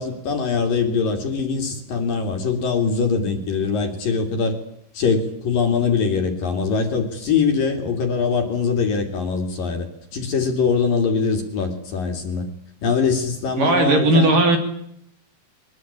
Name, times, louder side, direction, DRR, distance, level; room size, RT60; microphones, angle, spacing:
voice 1, 0.0-4.6 4.9-12.5 12.8-14.4, left 5 dB, 50° left, 5 dB, 3.8 m, -22 dB
voice 2, 13.6-14.6, right 2 dB, 50° right, 5 dB, 4.2 m, -16 dB
23.0 x 20.0 x 8.7 m, 0.73 s
omnidirectional pair, 5.6 m